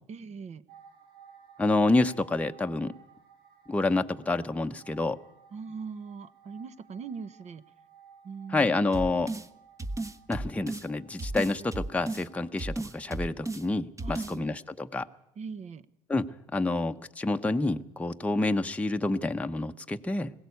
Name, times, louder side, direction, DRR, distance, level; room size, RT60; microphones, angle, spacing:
voice 1, 0.1-0.6 5.5-7.7 8.2-8.8 14.0-14.5 15.4-15.9, right 5 dB, 45° right, 16 dB, 1.0 m, -41 dB
sound 1, 0.7-13.2 13.5-13.6, right 7 dB, 75° right, 6.8 m, -57 dB
voice 2, 1.6-2.9 3.7-5.2 8.5-9.3 10.3-15.1 16.1-20.3, left 2 dB, 10° left, 5 dB, 0.9 m, -28 dB
sound 2, 8.9-9.5 9.8-10.9 11.2-12.3 12.6-13.6 14.0-14.4, right 2 dB, 20° right, 1.2 m, -34 dB
20.5 x 16.5 x 8.4 m, 0.80 s
hypercardioid pair, 70°, 16 cm